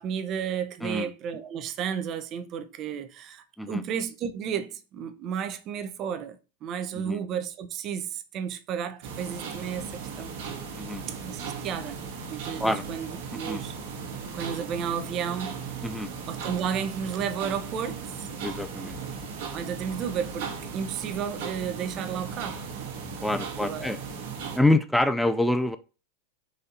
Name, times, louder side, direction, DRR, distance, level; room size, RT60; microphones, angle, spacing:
voice 1, 0.0-10.3 11.1-12.0 12.3-13.8 14.3-15.5 16.3-18.3 19.5-22.7 23.3-23.9, right 7 dB, 40° right, 0.6 m, -33 dB
sound 1, 9.0-24.6, right 5 dB, 65° right, 1.2 m, -37 dB
voice 2, 18.4-19.0 23.2-24.0 24.6-25.8, left 1 dB, 5° left, 0.3 m, -26 dB
4.2 x 2.6 x 3.9 m
hypercardioid pair, 110°, 0 cm